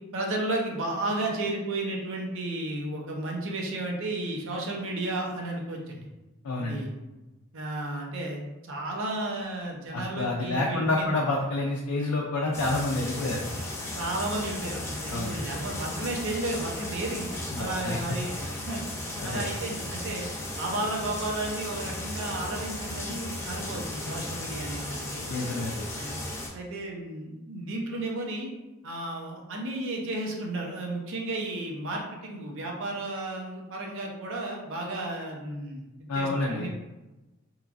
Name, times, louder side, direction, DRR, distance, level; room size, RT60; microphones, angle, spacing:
voice 1, 0.1-6.0 6.6-6.9 7.5-11.1 14.0-17.3 17.6-18.4 18.7-18.8 19.2-20.2 20.6-25.3 26.0-26.2 26.5-28.5 28.8-35.8 36.1-36.7, right 2 dB, 60° right, 0 dB, 0.6 m, -33 dB
voice 2, 6.4-6.9 9.9-13.5 15.1-15.3 17.5-18.0 19.2-19.5 25.3-25.9 36.1-36.7, left 2 dB, 80° left, -2 dB, 0.4 m, -28 dB
sound 1, 12.5-26.5, left 1 dB, 10° left, 0.4 m, -35 dB
3.0 x 2.3 x 2.4 m, 1.1 s
head